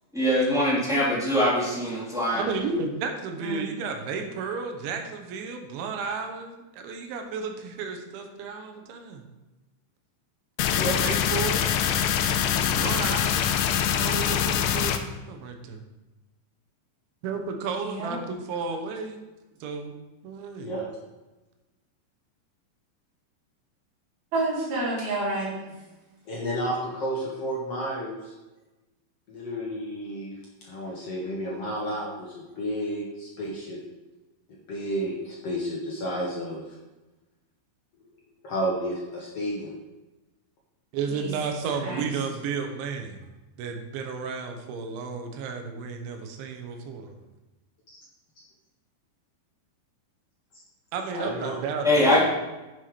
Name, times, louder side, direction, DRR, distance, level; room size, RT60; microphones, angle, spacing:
voice 1, 0.1-2.4 51.8-52.2, left 1 dB, ahead, -8 dB, 2.4 m, -22 dB
voice 2, 2.4-9.2 11.0-11.6 12.4-15.0 15.3-15.8 17.2-19.2 19.6-19.9 20.2-20.7 40.9-43.2 43.6-47.1 50.9-52.1, right 5 dB, 85° right, 5 dB, 3.5 m, -33 dB
sound 1, 10.6-15.0, left 9 dB, 80° left, 2.7 m, -24 dB
voice 3, 17.8-18.2 24.3-25.6 41.0-41.3 41.8-42.1, right 2 dB, 55° right, -6 dB, 5.3 m, -29 dB
voice 4, 26.3-28.3 29.3-30.3 30.6-33.8 34.7-36.6 38.4-39.7 47.9-48.0 51.1-51.6 52.1-52.2, equal, 65° left, -3 dB, 1.5 m, -31 dB
10.0 x 7.6 x 5.0 m, 1.1 s
omnidirectional pair, 5.2 m